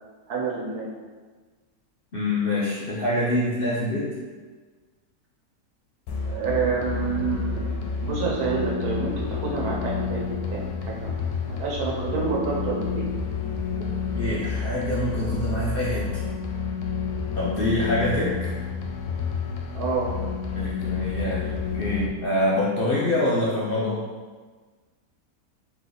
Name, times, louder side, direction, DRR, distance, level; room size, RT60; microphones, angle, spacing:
voice 1, 0.3-0.9 6.2-7.7 8.0-11.2 11.5-13.0 17.6-17.7 19.7-20.1, right 4 dB, 85° right, -3 dB, 1.4 m, -28 dB
voice 2, 2.1-4.1 14.1-16.0 17.3-18.5 20.5-24.0, left 1 dB, 55° left, -6 dB, 0.6 m, -25 dB
sound 1, 6.1-22.1, left 5 dB, 85° left, 1.1 m, -29 dB
3.4 x 3.1 x 3.9 m, 1.4 s
omnidirectional pair, 1.6 m